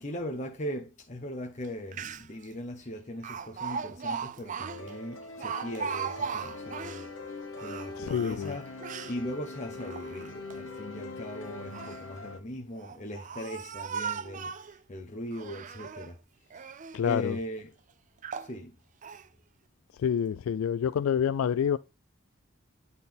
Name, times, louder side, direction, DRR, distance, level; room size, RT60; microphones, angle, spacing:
voice 1, 0.0-7.1 7.6-8.7 9.1-16.2 16.5-16.7 17.0-17.7 18.4-18.7, left 1 dB, 35° left, 0.9 m, -39 dB
Speech, 1.6-1.7 1.9-2.5 3.2-7.1 7.5-9.2 9.7-10.6 11.5-12.0 12.7-14.8 15.3-16.1 16.5-17.0 17.6-17.7 18.2-18.5 19.0-19.3, right 6 dB, 35° right, 0.4 m, -38 dB
sound 1, 4.7-12.4, left 3 dB, 65° left, 1.1 m, -42 dB
voice 2, 8.0-8.5 16.9-17.4 20.0-21.8, left 8 dB, 80° left, 0.3 m, -27 dB
10.5 x 4.0 x 3.5 m
head